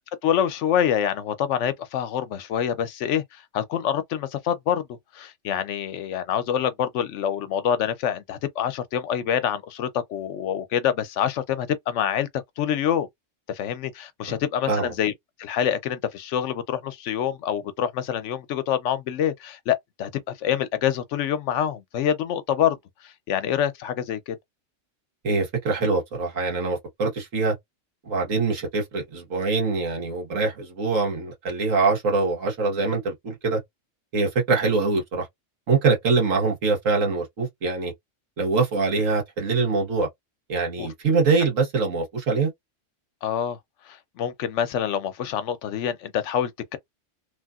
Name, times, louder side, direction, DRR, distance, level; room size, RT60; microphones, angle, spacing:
voice 1, 0.2-13.1 13.5-15.1 15.4-22.8 23.0-24.4 40.8-40.9 43.2-43.6 43.9-46.8, left 9 dB, 75° left, 0.9 m, -26 dB
voice 2, 25.2-27.6 28.1-33.6 34.1-35.3 35.7-37.9 38.4-40.1 40.5-42.5, right 4 dB, 85° right, 1.8 m, -24 dB
3.2 x 2.5 x 2.4 m
omnidirectional pair, 1.3 m